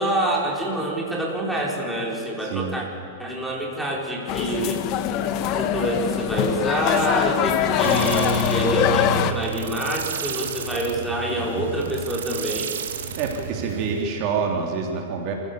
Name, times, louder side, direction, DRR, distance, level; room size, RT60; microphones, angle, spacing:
voice 1, 0.0-2.9 3.2-4.8 5.5-12.7, right 1 dB, ahead, -3 dB, 4.6 m, -26 dB
voice 2, 2.4-2.8 7.6-8.1 11.4-11.7 13.2-15.3, right 5 dB, 45° right, 2 dB, 3.2 m, -27 dB
sound 1, 4.3-9.3, left 9 dB, 40° left, 1.3 m, -22 dB
sound 2, 7.8-14.1, right 7 dB, 80° right, 2.2 m, -33 dB
28.0 x 15.5 x 7.0 m, 3.0 s
hypercardioid pair, 135°, 0 cm